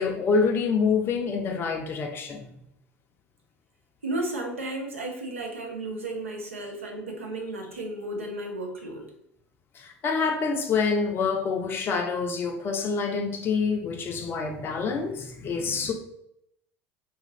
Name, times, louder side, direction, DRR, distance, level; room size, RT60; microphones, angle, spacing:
voice 1, 0.0-2.5 9.7-15.9, left 5 dB, 35° left, 0.4 m, -26 dB
voice 2, 4.0-9.1, right 2 dB, 85° right, 0.6 m, -33 dB
2.6 x 2.5 x 3.0 m
figure-of-eight pair, 70°, 7 cm